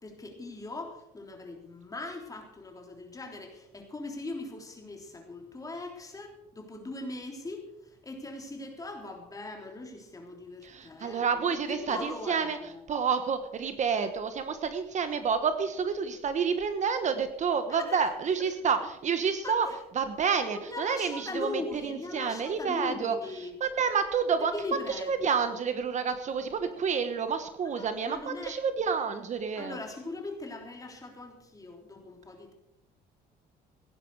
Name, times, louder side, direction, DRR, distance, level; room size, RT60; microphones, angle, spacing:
voice 1, 0.0-12.8 17.7-18.0 19.4-19.8 20.5-23.5 24.4-25.6 27.6-28.6 29.5-32.5, left 2 dB, 20° left, 2 dB, 3.4 m, -40 dB
voice 2, 10.6-12.6 12.9-19.7 19.9-29.8, right 6 dB, 45° right, 9 dB, 1.3 m, -29 dB
16.0 x 11.0 x 4.8 m, 0.79 s
cardioid pair, 110°, 17 cm